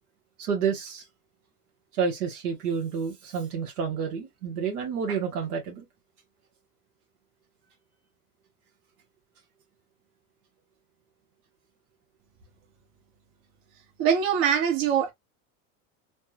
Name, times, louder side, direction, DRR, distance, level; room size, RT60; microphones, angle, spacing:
voice 1, 0.4-1.0 1.9-5.8, right 6 dB, 85° right, 1.0 m, -29 dB
voice 2, 14.0-15.1, right 8 dB, 60° right, 1.2 m, -23 dB
3.3 x 2.0 x 2.7 m
hypercardioid pair, 95°, 44 cm